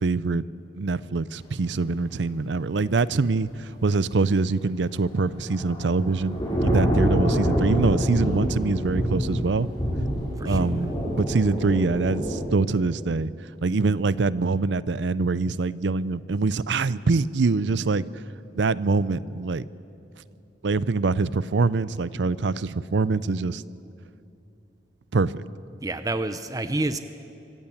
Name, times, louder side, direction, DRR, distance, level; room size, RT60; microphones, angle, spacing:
voice 1, 0.0-0.4 0.8-9.7 10.4-13.3 13.6-18.0 18.6-19.6 20.6-23.6 25.1-25.4, right 3 dB, 85° right, 18 dB, 0.6 m, -24 dB
Thunder / Rain, 5.1-12.4, equal, 25° left, 6.4 m, -26 dB
voice 2, 25.8-27.0, right 2 dB, 20° right, 10 dB, 0.7 m, -28 dB
25.0 x 14.5 x 8.5 m, 2.8 s
head